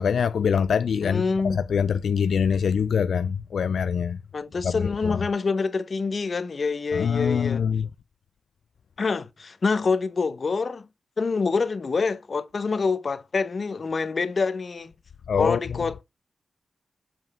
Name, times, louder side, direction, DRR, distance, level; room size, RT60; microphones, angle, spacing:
voice 1, 0.0-1.2 1.7-4.2 4.6-5.2 6.9-7.9 15.3-15.6, left 7 dB, 80° left, 0.3 m, -24 dB
voice 2, 1.0-1.6 4.3-7.6 9.0-10.9 11.2-14.9 15.4-16.0, left 4 dB, 50° left, 0.9 m, -26 dB
7.3 x 5.4 x 3.6 m
wide cardioid pair, 95°, 0 cm